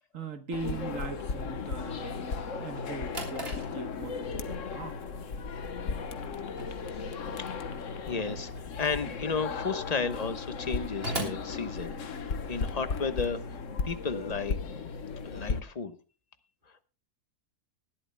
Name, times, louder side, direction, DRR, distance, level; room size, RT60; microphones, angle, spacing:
voice 1, 0.1-5.0, right 4 dB, 55° right, 9 dB, 1.5 m, -40 dB
sound 1, 0.5-15.6, left 5 dB, 55° left, 1.4 m, -36 dB
Drawer open or close, 2.8-12.5, right 2 dB, 35° right, 3.4 m, -43 dB
voice 2, 6.9-7.6 8.1-14.6 15.2-16.0, left 5 dB, 30° left, 10 dB, 1.0 m, -34 dB
19.5 x 13.5 x 2.2 m, 0.37 s
omnidirectional pair, 1.7 m